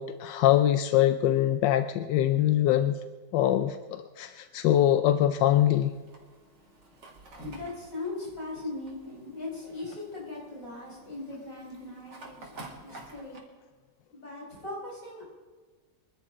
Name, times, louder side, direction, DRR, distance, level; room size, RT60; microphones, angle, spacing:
voice 1, 0.0-3.0 3.3-5.9, left 12 dB, 90° left, 9 dB, 1.3 m, -23 dB
Fire, 5.5-13.4, right 2 dB, 75° right, 2.9 m, -50 dB
voice 2, 7.4-13.4 14.1-15.2, left 2 dB, 50° left, -4 dB, 6.3 m, -39 dB
25.0 x 12.0 x 3.8 m, 1.4 s
omnidirectional pair, 1.9 m